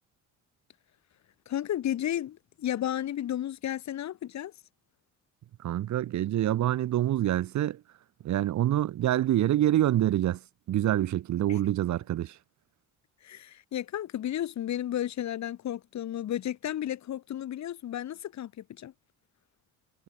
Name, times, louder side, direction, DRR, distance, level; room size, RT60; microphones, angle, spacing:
voice 1, 1.5-4.5 11.5-11.6 13.2-18.9, left 11 dB, 65° left, 1.6 m, -33 dB
voice 2, 5.6-7.8 8.2-10.4 10.7-12.3, right 12 dB, 70° right, 1.3 m, -26 dB
cardioid pair, 90°, 30 cm